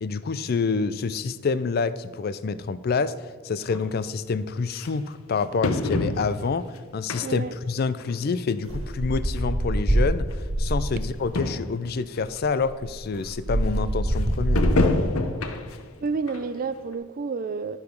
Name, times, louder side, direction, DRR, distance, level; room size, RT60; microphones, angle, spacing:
voice 1, 0.0-3.2 3.4-6.7 6.9-15.0, left 4 dB, 45° left, 15 dB, 0.4 m, -27 dB
sound 1, 3.7-3.8 4.8-4.9 5.6-6.6 7.1-7.6 8.0-8.1 9.1-9.2 9.4-9.5 10.3-10.4 10.7-10.8 11.1-11.2 11.4-11.8 12.4-12.5 14.6-15.9 16.3-16.4 16.9-17.0, left 2 dB, 90° left, 0.8 m, -26 dB
voice 2, 7.2-7.5 16.0-17.8, right 4 dB, 40° right, 12 dB, 0.3 m, -29 dB
sound 2, 8.7-11.2 12.2-12.3 12.6-15.2, right 1 dB, 70° right, 1.7 m, -25 dB
11.5 x 4.8 x 5.2 m, 1.5 s
head